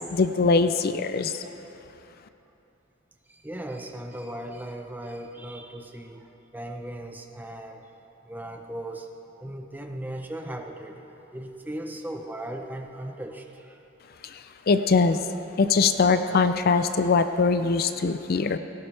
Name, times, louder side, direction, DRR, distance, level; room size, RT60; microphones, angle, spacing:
voice 1, 0.1-1.3 14.7-15.2 15.6-18.6, left 4 dB, 50° left, 10 dB, 0.4 m, -22 dB
voice 2, 3.3-6.3 6.5-7.8 8.3-9.1 9.4-11.0 11.3-13.8, right 1 dB, 10° right, 4 dB, 0.8 m, -37 dB
17.5 x 16.0 x 3.4 m, 3.0 s
head